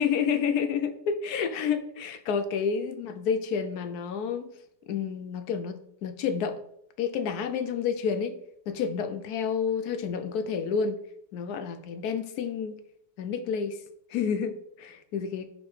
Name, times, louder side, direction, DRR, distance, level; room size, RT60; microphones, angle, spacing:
voice 1, 0.0-4.5 4.9-6.6 7.0-8.4 8.7-11.0 11.3-12.8 13.2-13.8 14.1-15.5, left 6 dB, 75° left, 1.2 m, -29 dB
5.2 x 4.0 x 4.8 m
omnidirectional pair, 1.7 m